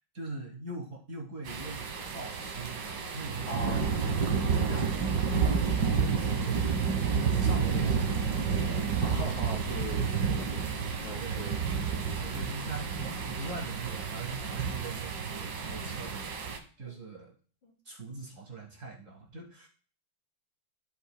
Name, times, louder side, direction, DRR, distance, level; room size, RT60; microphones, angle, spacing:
voice 1, 0.0-8.6 11.2-11.7 12.2-16.5 16.8-17.3 17.8-19.7, right 3 dB, 40° right, -1 dB, 1.6 m, -41 dB
sound 1, 1.5-16.6, right 6 dB, 60° right, 1.7 m, -30 dB
voice 2, 3.5-3.9 8.3-10.5 11.0-11.6 16.8-17.0 17.6-17.7, equal, 75° left, -2 dB, 3.5 m, -41 dB
14.0 x 5.3 x 2.2 m, 0.42 s
omnidirectional pair, 2.3 m